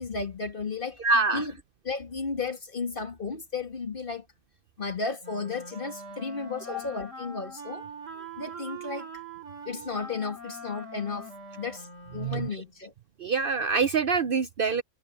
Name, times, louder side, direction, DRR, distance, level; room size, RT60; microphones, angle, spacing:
voice 1, 0.0-1.0 1.3-1.6 1.8-4.3 4.8-7.9 8.4-9.1 9.7-12.9, left 4 dB, 45° left, 2.3 m, -34 dB
voice 2, 1.0-1.4 12.2-12.5 13.2-14.8, right 4 dB, 55° right, 0.7 m, -25 dB
Wind instrument woodwind instrument, 5.2-12.7, right 2 dB, 80° right, 3.1 m, -43 dB
omnidirectional pair, 1.3 m